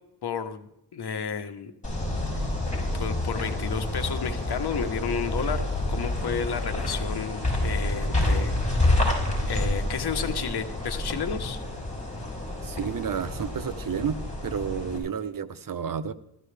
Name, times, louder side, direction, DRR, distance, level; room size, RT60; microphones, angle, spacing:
voice 1, 0.2-1.7 2.3-2.5 2.9-8.6 8.8-9.0 9.5-11.6, left 6 dB, 65° left, 9 dB, 1.2 m, -32 dB
sound 1, 1.8-15.0, left 1 dB, 20° left, 6.2 m, -28 dB
voice 2, 12.6-16.1, right 7 dB, 55° right, 12 dB, 0.9 m, -31 dB
15.5 x 13.5 x 3.4 m, 0.79 s
cardioid pair, 95°, 41 cm